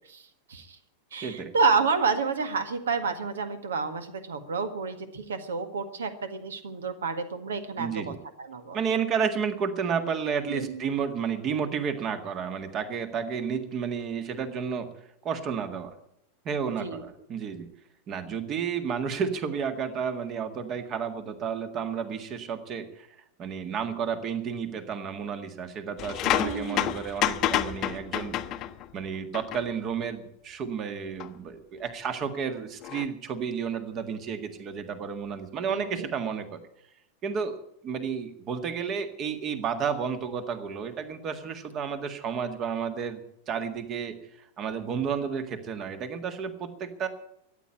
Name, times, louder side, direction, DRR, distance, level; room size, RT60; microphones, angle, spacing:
voice 1, 1.1-8.1 8.5-8.8 10.5-10.8 16.8-17.0 26.4-26.9 35.7-36.1, right 4 dB, 65° right, 10 dB, 1.7 m, -29 dB
voice 2, 7.8-8.2 8.7-14.9 15.2-15.9 16.5-17.7 18.1-23.1 23.4-28.3 28.9-36.6 37.2-43.2 43.5-44.2 44.6-47.1, right 6 dB, 30° right, 9 dB, 1.8 m, -31 dB
sound 1, 26.0-28.9 29.3-29.6 31.2-31.3 32.8-33.1, left 12 dB, 35° left, 0.9 m, -29 dB
14.0 x 9.6 x 8.9 m, 0.78 s
figure-of-eight pair, 90°, 0 cm